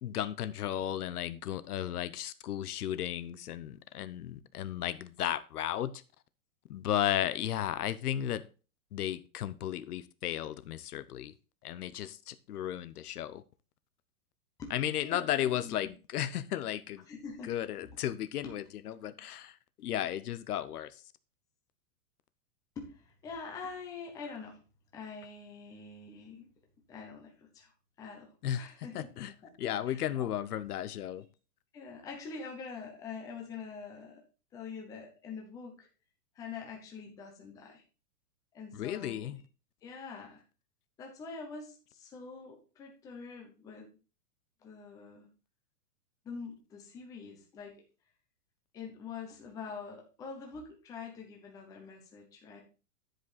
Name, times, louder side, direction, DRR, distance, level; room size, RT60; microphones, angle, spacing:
voice 1, 0.0-6.0 6.7-8.4 8.9-11.3 11.6-13.4 14.7-17.0 17.4-21.0 28.4-31.3 38.7-39.4, left 11 dB, 75° left, 0.8 m, -34 dB
voice 2, 15.0-15.9 17.1-17.9 22.8-24.6 24.9-26.5 26.9-27.7 28.0-28.3 28.6-29.1 29.4-29.5 29.9-30.3 31.7-34.2 34.5-35.9 36.4-37.8 38.5-39.3 39.8-40.4 41.0-44.0 44.6-45.3 46.2-47.8 48.7-52.6, left 5 dB, 10° left, 0.8 m, -45 dB
10.0 x 5.1 x 4.1 m
supercardioid pair, 170°, 46 cm